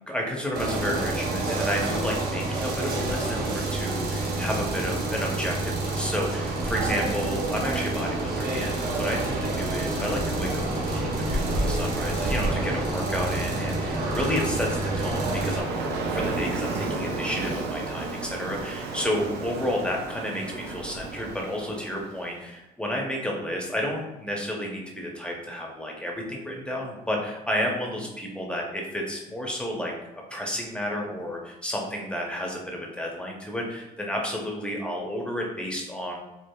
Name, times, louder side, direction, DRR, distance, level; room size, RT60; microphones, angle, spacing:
voice 1, 0.1-15.7 16.1-29.9 30.3-36.2, equal, 5° left, -1 dB, 0.6 m, -31 dB
sound 1, 0.5-15.6, right 2 dB, 60° right, 0.8 m, -28 dB
Ocean, 3.3-22.4, right 3 dB, 80° right, 0.6 m, -36 dB
sound 2, 9.2-17.4, left 4 dB, 85° left, 0.6 m, -39 dB
4.7 x 2.4 x 2.2 m, 0.99 s
cardioid pair, 110°, 17 cm